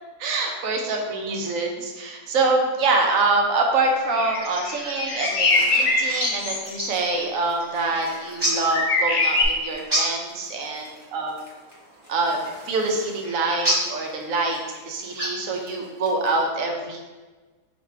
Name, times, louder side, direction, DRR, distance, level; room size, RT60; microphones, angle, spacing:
voice 1, 0.2-10.8 11.1-11.4 12.1-12.4 12.7-17.0, right 3 dB, 65° right, 2 dB, 1.0 m, -25 dB
sound 1, 4.0-6.9 7.9-8.1 8.7-9.4, left 3 dB, 75° left, 0.3 m, -23 dB
sound 2, 5.2-16.4, equal, 25° right, 0.7 m, -33 dB
4.1 x 2.5 x 4.5 m, 1.3 s
omnidirectional pair, 1.6 m